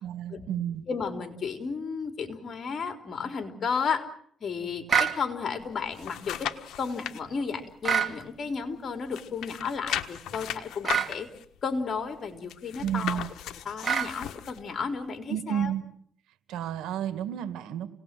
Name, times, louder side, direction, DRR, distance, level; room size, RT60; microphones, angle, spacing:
voice 1, 0.0-0.8 12.8-13.3 15.3-15.9 16.5-17.9, right 10 dB, 90° right, 11 dB, 1.9 m, -31 dB
voice 2, 0.9-4.1 4.4-6.5 6.8-11.3 11.6-13.2 13.7-15.7, left 5 dB, 50° left, 7 dB, 3.6 m, -33 dB
sound 1, 4.9-5.2 7.8-8.1 10.8-11.1 13.8-14.1, right 7 dB, 40° right, 3.0 m, -25 dB
sound 2, 5.6-7.2 7.7-8.8 9.1-14.6 15.1-15.2, left 11 dB, 80° left, 1.3 m, -37 dB
28.5 x 19.0 x 7.6 m, 0.65 s
cardioid pair, 90°, 0 cm